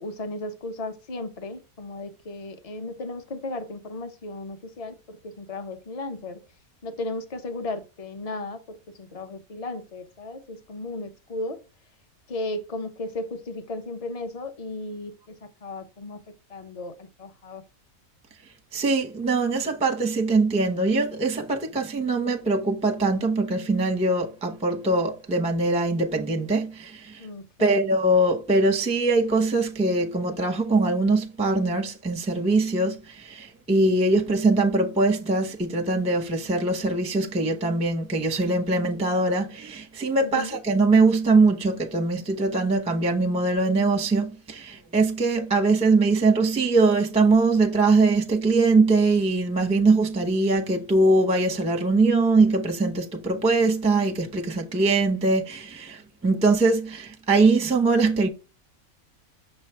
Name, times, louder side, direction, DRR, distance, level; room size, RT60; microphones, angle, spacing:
voice 1, 0.0-6.4 6.8-11.6 12.3-16.2 16.5-17.6 27.2-27.8 40.2-40.6, left 2 dB, 35° left, 0.6 m, -35 dB
voice 2, 18.7-27.2 27.6-58.3, right 3 dB, 5° right, 0.5 m, -22 dB
6.5 x 3.2 x 4.5 m
omnidirectional pair, 1.6 m